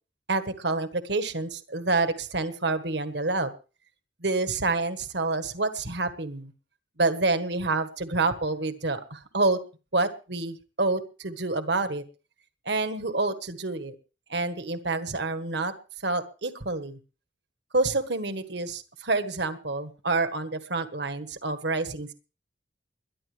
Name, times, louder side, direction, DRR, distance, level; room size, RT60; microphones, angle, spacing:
voice 1, 0.3-3.5 4.2-6.5 7.0-9.6 9.9-12.0 12.6-13.9 14.3-15.7 16.0-17.0 17.7-22.1, right 3 dB, 65° right, 9 dB, 1.5 m, -28 dB
22.0 x 11.5 x 3.4 m, 0.34 s
head